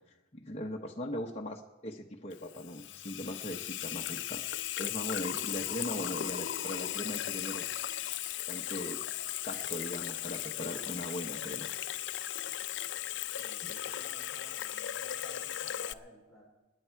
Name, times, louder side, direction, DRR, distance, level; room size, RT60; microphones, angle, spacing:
voice 1, 0.3-4.4 4.8-7.6 8.5-9.0 9.4-11.7 13.6-13.7, equal, 35° left, 0 dB, 1.0 m, -39 dB
Water tap faucet / Sink (filling or washing), 2.3-15.9, left 12 dB, 75° left, 0.5 m, -37 dB
voice 2, 13.3-16.5, equal, ahead, -4 dB, 3.4 m, -56 dB
28.0 x 10.0 x 4.6 m, 1.1 s
head